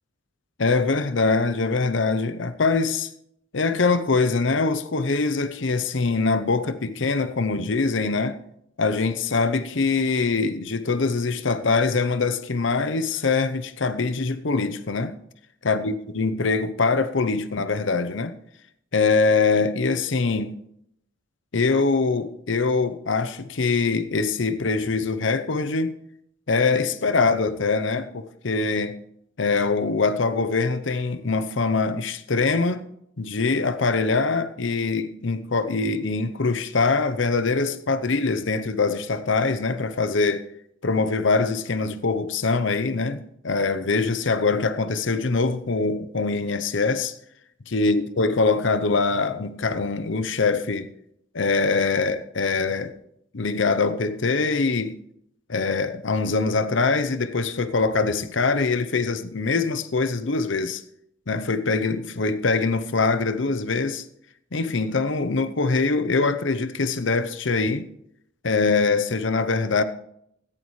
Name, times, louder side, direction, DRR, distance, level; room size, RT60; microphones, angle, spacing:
voice 1, 0.6-3.1 3.5-8.4 8.8-15.1 15.6-18.3 18.9-20.6 21.5-26.0 26.5-29.0 29.4-32.8 33.2-40.5 40.8-47.2 47.7-50.9 51.3-52.9 53.3-55.0 55.5-60.8 61.3-64.0 64.5-67.9 68.4-69.8, left 4 dB, 65° left, 0.8 m, -23 dB
16.5 x 11.5 x 3.2 m
head